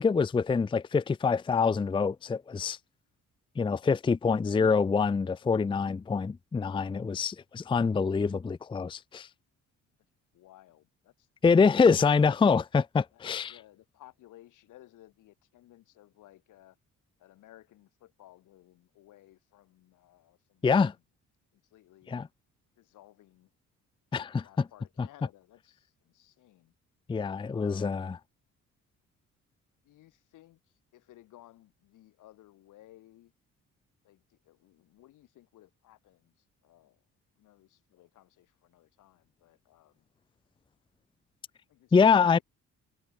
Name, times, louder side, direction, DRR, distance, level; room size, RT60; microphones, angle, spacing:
voice 1, 0.0-2.8 3.6-9.3 11.4-13.5 20.6-20.9 22.1-22.3 24.1-24.7 25.0-25.1 27.1-28.2 41.9-42.4, left 5 dB, 15° left, 0.5 m, -25 dB
voice 2, 10.3-11.8 13.1-16.8 17.2-21.0 21.5-22.2 22.8-23.5 24.4-26.7 27.5-28.0 29.8-33.3 34.0-37.0 37.4-40.1 41.7-42.4, left 15 dB, 85° left, 7.1 m, -58 dB
cardioid pair, 90°, 30 cm